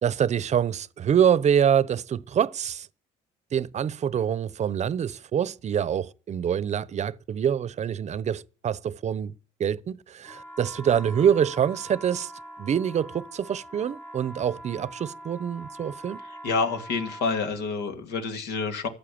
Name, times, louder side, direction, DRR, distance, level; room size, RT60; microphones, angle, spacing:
voice 1, 0.0-2.9 3.5-9.3 9.6-12.3 12.6-16.2, right 8 dB, 40° right, 0.8 m, -25 dB
sound 1, 10.2-17.5, right 1 dB, 10° left, 1.2 m, -43 dB
voice 2, 16.4-18.9, left 4 dB, 75° left, 2.6 m, -28 dB
14.5 x 8.4 x 8.6 m
cardioid pair, 110°, 17 cm